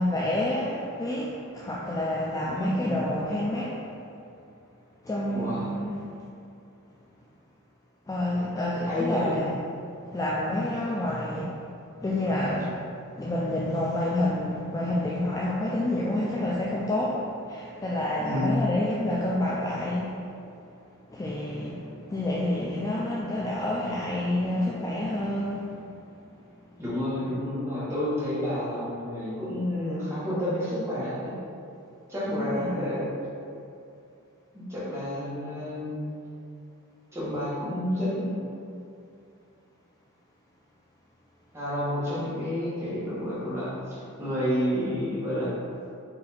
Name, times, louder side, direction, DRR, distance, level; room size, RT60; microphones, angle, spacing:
voice 1, 0.0-3.8 5.0-6.1 8.1-9.6 10.0-11.6 12.0-12.8 13.1-20.2 21.1-25.8 32.3-32.7, left 1 dB, 15° left, -6 dB, 0.3 m, -28 dB
voice 2, 2.4-3.0 5.3-5.7 8.9-9.4 18.2-18.6 26.8-31.4 32.1-33.1 34.5-36.1 37.1-38.4 41.5-45.5, equal, 10° right, -10 dB, 1.3 m, -30 dB
4.2 x 2.7 x 4.1 m, 2.6 s
head